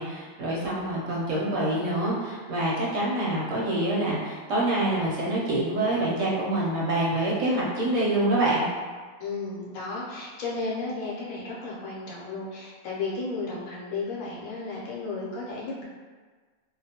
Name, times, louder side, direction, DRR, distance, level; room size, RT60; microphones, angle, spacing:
voice 1, 0.0-8.6, right 1 dB, 65° right, -5 dB, 0.9 m, -26 dB
voice 2, 9.2-15.9, left 3 dB, 70° left, -5 dB, 1.0 m, -33 dB
2.3 x 2.2 x 2.7 m, 1.4 s
omnidirectional pair, 1.5 m